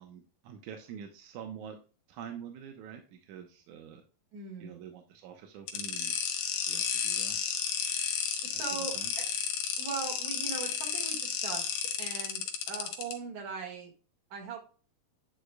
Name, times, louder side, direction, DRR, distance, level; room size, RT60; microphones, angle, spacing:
voice 1, 0.0-1.8 2.1-4.0 4.6-6.1 6.7-7.4 8.5-9.1, right 8 dB, 75° right, 5 dB, 1.9 m, -46 dB
voice 2, 4.3-4.8 8.4-9.3 9.8-12.4 12.7-13.9 14.3-14.6, right 5 dB, 60° right, 0 dB, 2.9 m, -40 dB
sound 1, 5.7-13.1, left 8 dB, 70° left, 2.5 m, -32 dB
9.5 x 5.1 x 2.2 m, 0.37 s
omnidirectional pair, 4.1 m